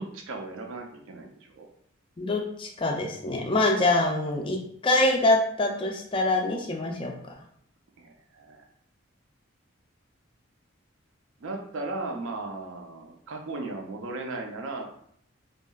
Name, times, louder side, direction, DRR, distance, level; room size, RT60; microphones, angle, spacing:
voice 1, 0.0-1.7 8.0-8.7 11.4-14.9, right 2 dB, 70° right, 2 dB, 0.4 m, -36 dB
voice 2, 2.2-7.1, left 2 dB, 25° left, 1 dB, 0.3 m, -25 dB
2.8 x 2.3 x 2.2 m, 0.67 s
head